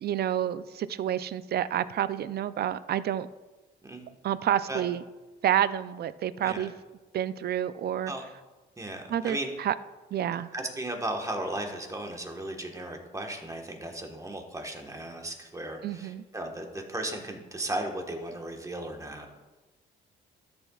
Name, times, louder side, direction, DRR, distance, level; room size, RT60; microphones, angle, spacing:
voice 1, 0.0-3.3 4.2-5.0 5.4-6.7 7.1-8.1 9.1-9.7 10.1-10.5 15.8-16.2, right 10 dB, 55° right, 15 dB, 0.4 m, -29 dB
voice 2, 6.4-6.7 8.1-8.3 8.8-9.5 10.5-19.3, right 1 dB, 15° right, 2 dB, 1.4 m, -36 dB
13.0 x 6.9 x 2.4 m, 1.2 s
cardioid pair, 90°, 20 cm